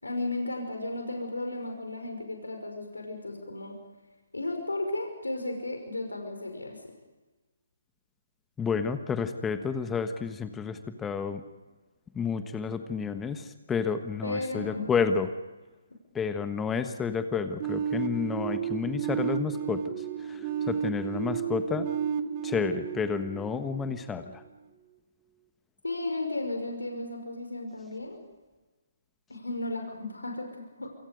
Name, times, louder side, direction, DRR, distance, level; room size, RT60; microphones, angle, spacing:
voice 1, 0.0-3.7 4.3-6.8 14.2-14.9 25.8-28.2 29.3-30.9, left 2 dB, 85° left, 3 dB, 5.6 m, -34 dB
voice 2, 8.6-11.4 12.1-15.3 16.1-21.9 22.4-24.4, left 6 dB, 10° left, 8 dB, 1.4 m, -30 dB
sound 1, 17.6-24.4, right 8 dB, 30° right, 1.3 m, -32 dB
28.0 x 25.0 x 5.3 m, 1.2 s
figure-of-eight pair, 140°, 0 cm